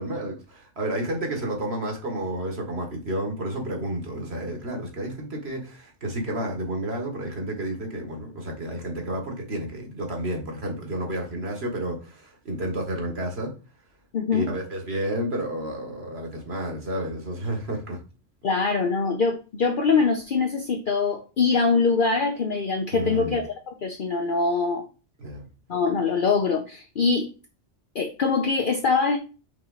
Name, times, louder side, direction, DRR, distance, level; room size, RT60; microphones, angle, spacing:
voice 1, 0.0-13.5 14.3-18.0 22.9-23.4 25.2-25.5, right 1 dB, 60° right, 1.8 m, -31 dB
voice 2, 14.1-14.5 18.4-24.8 25.7-27.3 27.9-29.2, left 4 dB, 50° left, 0.8 m, -23 dB
5.7 x 4.4 x 4.0 m
omnidirectional pair, 1.2 m